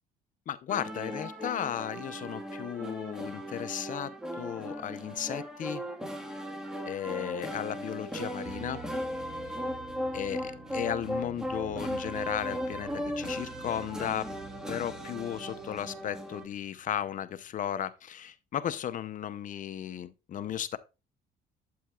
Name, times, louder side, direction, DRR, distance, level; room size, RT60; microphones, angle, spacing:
voice 1, 0.5-4.1 4.4-5.8 6.9-8.8 10.1-14.3 14.7-20.8, left 10 dB, 50° left, 0.7 m, -35 dB
sound 1, 0.7-16.5, equal, 5° right, 1.6 m, -37 dB
sound 2, 8.4-17.1, right 5 dB, 60° right, 5.1 m, -48 dB
8.6 x 8.5 x 2.4 m
cardioid pair, 110°, 17 cm